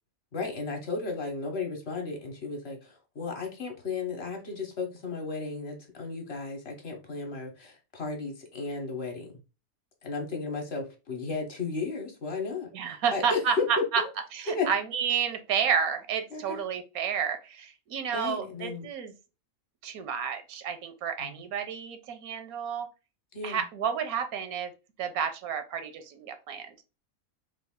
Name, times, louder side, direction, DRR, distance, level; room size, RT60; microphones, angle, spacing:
voice 1, 0.3-9.3 10.0-14.1 14.5-14.7 16.3-16.6 18.1-18.9 21.2-21.3 23.3-23.6, left 4 dB, 50° left, 2 dB, 0.9 m, -34 dB
voice 2, 12.7-14.0 14.3-19.1 19.8-22.9 23.4-24.7 25.0-26.8, right 7 dB, 85° right, 8 dB, 1.1 m, -30 dB
3.2 x 2.4 x 3.5 m, 0.30 s
omnidirectional pair, 1.5 m